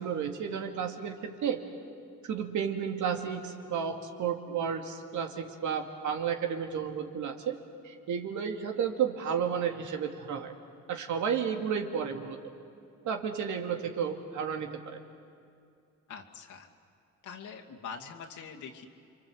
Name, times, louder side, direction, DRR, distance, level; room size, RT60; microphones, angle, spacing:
voice 1, 0.0-1.6 2.2-7.6 7.8-10.5 10.9-12.4 13.0-15.0, right 7 dB, 75° right, 3 dB, 2.5 m, -32 dB
voice 2, 16.1-16.7 17.2-18.9, left 6 dB, 75° left, 1 dB, 2.7 m, -44 dB
29.5 x 24.5 x 8.0 m, 2.5 s
cardioid pair, 90°, 30 cm